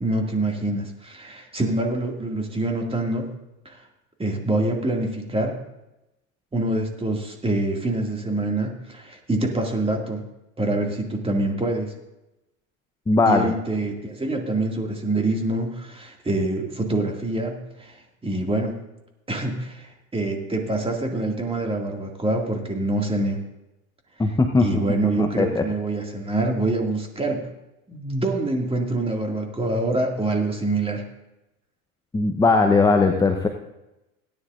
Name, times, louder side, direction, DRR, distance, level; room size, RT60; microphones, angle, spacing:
voice 1, 0.0-3.3 3.7-3.8 4.2-5.6 6.5-10.2 10.6-11.9 13.3-18.0 18.2-18.7 19.3-23.4 24.6-27.5 27.9-31.0, right 2 dB, 15° right, 1 dB, 2.2 m, -25 dB
voice 2, 13.1-13.5 24.2-24.8 25.2-25.6 32.1-33.5, left 3 dB, 10° left, 5 dB, 0.8 m, -19 dB
17.5 x 10.0 x 2.5 m, 0.94 s
hypercardioid pair, 85°, 43 cm